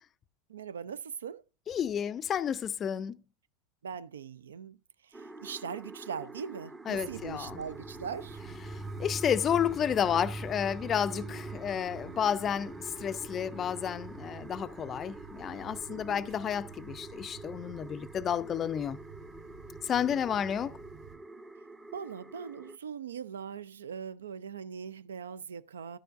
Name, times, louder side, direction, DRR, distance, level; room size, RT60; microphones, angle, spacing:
voice 1, 0.5-1.4 3.8-4.8 5.0-8.4 11.1-11.4 15.9-16.3 19.9-20.2 21.9-26.0, right 7 dB, 75° right, 0.3 m, -41 dB
voice 2, 1.7-3.2 6.9-7.6 8.7-19.0 19.8-20.8, left 8 dB, 30° left, 0.4 m, -31 dB
sound 1, 5.1-22.8, right 2 dB, 15° right, 0.7 m, -47 dB
sound 2, 6.9-21.2, right 7 dB, 50° right, 1.2 m, -51 dB
sound 3, 7.7-17.5, right 2 dB, 30° right, 1.9 m, -44 dB
12.5 x 6.7 x 2.5 m
figure-of-eight pair, 80°, 0 cm